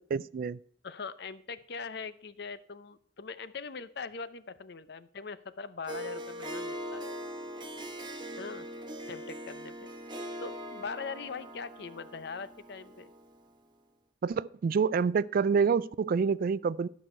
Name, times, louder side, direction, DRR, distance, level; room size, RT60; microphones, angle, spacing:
voice 1, 0.1-0.6 14.2-16.9, right 5 dB, 50° right, 0.3 m, -27 dB
voice 2, 0.8-7.0 8.4-8.7 9.1-9.9 10.4-13.1, left 5 dB, 65° left, 0.6 m, -41 dB
Harp, 5.9-13.4, equal, 25° right, 1.1 m, -41 dB
12.5 x 6.2 x 4.4 m
head